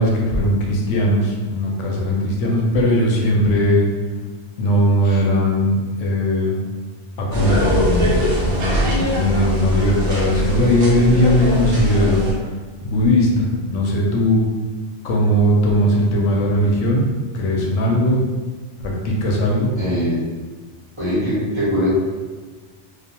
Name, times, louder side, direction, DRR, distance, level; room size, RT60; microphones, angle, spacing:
voice 1, 0.0-3.9 4.6-6.6 7.2-12.2 12.8-14.5 15.0-17.0 17.3-18.2 18.8-19.7, equal, 90° left, -1 dB, 0.9 m, -18 dB
sound 1, 7.3-12.3, equal, 60° right, 0.8 m, -21 dB
voice 2, 19.8-20.2 21.0-21.9, equal, 25° right, -11 dB, 0.9 m, -21 dB
2.4 x 2.2 x 2.8 m, 1.4 s
omnidirectional pair, 1.2 m